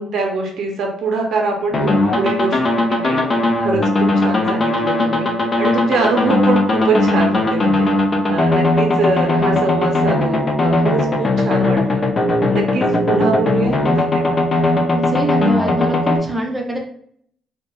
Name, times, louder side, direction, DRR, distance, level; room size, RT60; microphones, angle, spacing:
voice 1, 0.0-2.6 2.9-3.4 3.6-5.3 5.6-7.9 8.3-12.1 12.5-14.4, right 3 dB, 65° right, 1 dB, 0.5 m, -23 dB
sound 1, 1.7-16.2, left 2 dB, 35° left, 0.5 m, -17 dB
voice 2, 14.9-16.8, right 1 dB, 5° right, -1 dB, 0.6 m, -23 dB
2.7 x 2.1 x 2.2 m, 0.65 s
cardioid pair, 90°, 0 cm